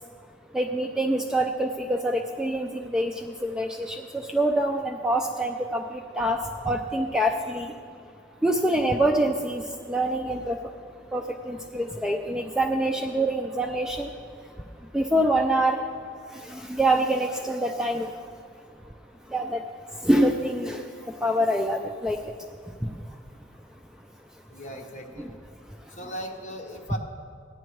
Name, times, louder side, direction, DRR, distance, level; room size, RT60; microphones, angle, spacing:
voice 1, 0.5-6.4 6.6-7.7 8.4-9.6 9.9-10.6 11.1-14.1 14.9-15.8 16.5-18.1 19.3-19.6 20.0-20.8 21.2-22.2 25.2-25.3, right 1 dB, 5° right, 2 dB, 0.3 m, -25 dB
voice 2, 24.5-25.3 25.9-27.0, equal, 40° left, 0 dB, 1.2 m, -38 dB
16.5 x 10.0 x 3.1 m, 2.3 s
head